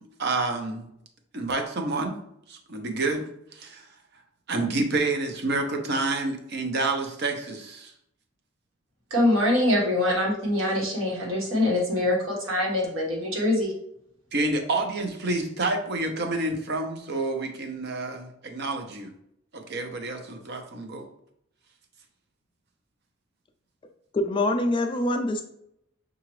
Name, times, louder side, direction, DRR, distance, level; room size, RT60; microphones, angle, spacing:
voice 1, 0.2-0.9 1.3-2.2 2.5-3.2 3.5-3.9 4.5-7.9 14.3-19.1 19.5-21.0, right 2 dB, 55° right, 5 dB, 0.7 m, -28 dB
voice 2, 9.1-13.7, left 1 dB, 80° right, -3 dB, 1.5 m, -24 dB
voice 3, 24.1-25.4, left 1 dB, 25° left, 6 dB, 0.3 m, -24 dB
5.7 x 2.5 x 3.1 m, 0.74 s
head